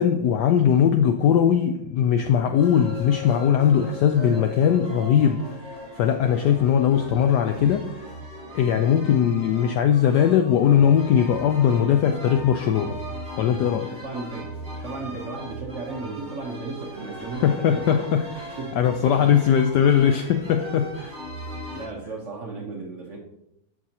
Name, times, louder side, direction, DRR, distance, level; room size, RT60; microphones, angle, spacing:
voice 1, 0.0-8.1 8.5-13.0 13.4-13.9 17.4-21.2, left 8 dB, 75° left, 0.9 m, -20 dB
sound 1, 2.6-21.9, equal, 25° right, 3.3 m, -38 dB
voice 2, 14.0-18.2 18.6-19.5 21.7-23.2, right 3 dB, 50° right, 1.0 m, -35 dB
14.0 x 4.8 x 2.8 m
omnidirectional pair, 2.2 m